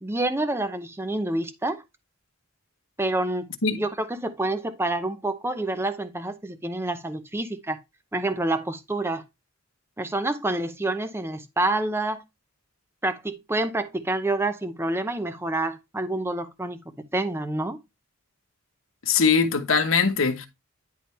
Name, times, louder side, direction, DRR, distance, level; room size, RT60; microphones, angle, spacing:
voice 1, 0.0-1.8 3.0-3.5 3.8-7.8 8.1-9.2 10.0-12.2 13.0-16.8 17.1-17.8, right 2 dB, 10° right, 0.7 m, -28 dB
voice 2, 19.0-20.5, left 5 dB, 80° left, 1.2 m, -21 dB
10.0 x 3.6 x 4.3 m
head